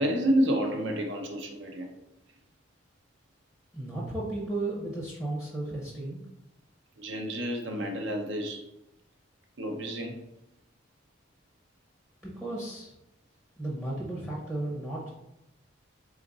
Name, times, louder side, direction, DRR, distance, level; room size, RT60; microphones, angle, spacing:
voice 1, 0.0-1.9 7.0-8.6 9.6-10.2, equal, 60° right, 3 dB, 0.7 m, -29 dB
voice 2, 3.7-6.2 12.2-12.9 13.6-15.1, right 2 dB, ahead, -5 dB, 0.7 m, -34 dB
3.8 x 2.4 x 3.9 m, 0.87 s
head